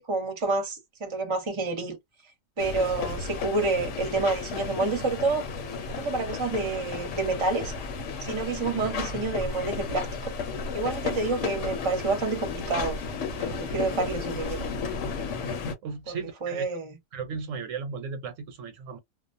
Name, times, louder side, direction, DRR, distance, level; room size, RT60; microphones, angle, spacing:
voice 1, 0.0-2.0 2.6-5.4 5.9-7.7 8.2-10.3 10.7-13.0 13.4-14.7 16.1-16.9, right 3 dB, 25° right, 0.8 m, -29 dB
sound 1, 2.6-15.7, left 5 dB, 70° left, 1.0 m, -33 dB
voice 2, 15.8-16.6 17.1-19.0, right 5 dB, 75° right, 1.0 m, -35 dB
2.3 x 2.1 x 2.5 m
omnidirectional pair, 1.4 m